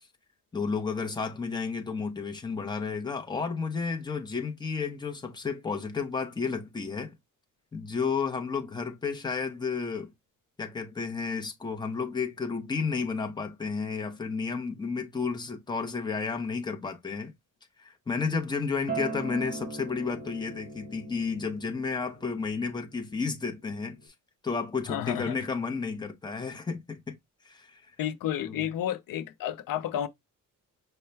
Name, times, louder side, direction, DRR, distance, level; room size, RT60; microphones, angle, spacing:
voice 1, 0.5-7.1 7.7-10.1 10.6-17.3 17.8-24.1 24.4-27.2 27.4-27.9 28.4-28.7, left 5 dB, 15° left, 0.7 m, -32 dB
Acoustic guitar, 18.9-24.1, right 4 dB, 25° right, 1.0 m, -40 dB
voice 2, 24.9-25.3 28.0-30.1, left 11 dB, 80° left, 0.5 m, -31 dB
5.4 x 2.1 x 3.2 m
wide cardioid pair, 140°, 33 cm